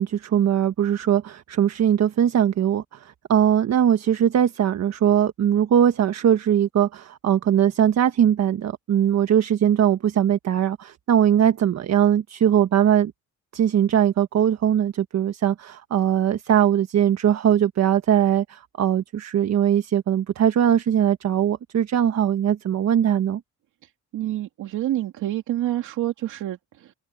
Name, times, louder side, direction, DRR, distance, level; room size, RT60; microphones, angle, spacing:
voice 1, 0.0-13.1 13.5-23.4, right 9 dB, 60° right, 1.4 m, -20 dB
voice 2, 24.1-26.9, right 13 dB, 80° right, 2.6 m, -28 dB
cardioid pair, 90°, 30 cm